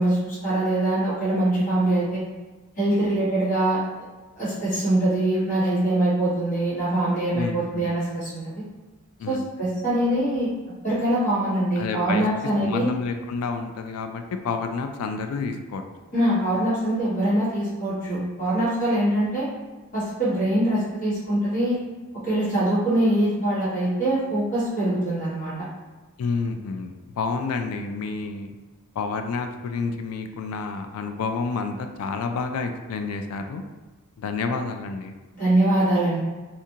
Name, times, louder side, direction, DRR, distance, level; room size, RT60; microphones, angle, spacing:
voice 1, 0.0-2.2 2.8-3.8 4.4-8.5 9.3-10.5 10.8-12.9 16.1-19.5 19.9-21.8 22.2-25.5 35.3-36.2, right 1 dB, 35° left, -11 dB, 1.4 m, -23 dB
voice 2, 7.3-7.9 9.2-9.4 11.8-12.2 12.6-15.8 26.2-28.5 29.0-33.6 34.2-35.1, left 4 dB, 80° left, 6 dB, 0.3 m, -29 dB
2.6 x 2.4 x 2.8 m, 1.2 s
head